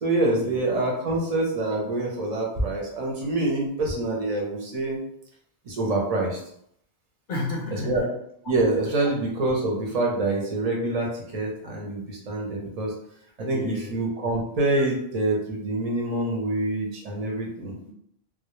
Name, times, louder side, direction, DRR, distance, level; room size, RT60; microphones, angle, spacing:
voice 1, 0.0-5.0 5.7-6.4 7.7-8.1 8.5-13.0 13.4-17.7, right 2 dB, 45° right, -1 dB, 0.5 m, -26 dB
voice 2, 7.3-8.0 13.5-13.9 17.8-17.9, left 2 dB, 55° left, -2 dB, 0.6 m, -31 dB
2.2 x 2.0 x 2.9 m, 0.71 s
omnidirectional pair, 1.1 m